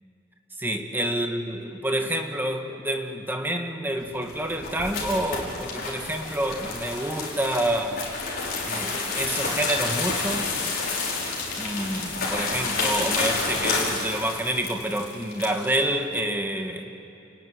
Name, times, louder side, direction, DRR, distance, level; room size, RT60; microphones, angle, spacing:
voice 1, 0.6-8.0 8.6-10.5 11.6-16.9, right 1 dB, 10° right, 4 dB, 1.8 m, -28 dB
sound 1, 4.1-15.8, left 3 dB, 55° left, 5.3 m, -29 dB
29.5 x 18.0 x 10.0 m, 2.7 s
head